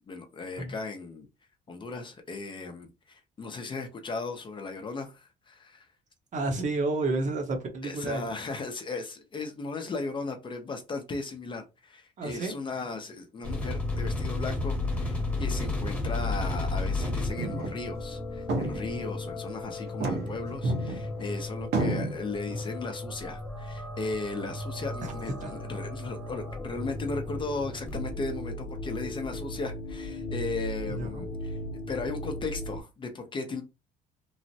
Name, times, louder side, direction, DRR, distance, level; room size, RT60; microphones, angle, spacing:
voice 1, 0.1-1.3 1.7-5.9 7.8-31.5 31.9-33.6, left 3 dB, 30° left, 0.6 m, -36 dB
voice 2, 6.3-8.3 12.2-12.5 22.5-22.6 25.0-25.1 25.4-25.5 30.9-31.2, right 2 dB, 45° right, 0.9 m, -31 dB
sound 1, 13.4-32.8, left 2 dB, 10° left, 1.1 m, -34 dB
sound 2, 16.8-17.1 17.4-17.8 18.1-18.2 18.5-19.3 19.9-21.3 21.7-22.1, right 2 dB, 75° right, 1.0 m, -30 dB
3.1 x 2.0 x 2.7 m
cardioid pair, 110°, 17 cm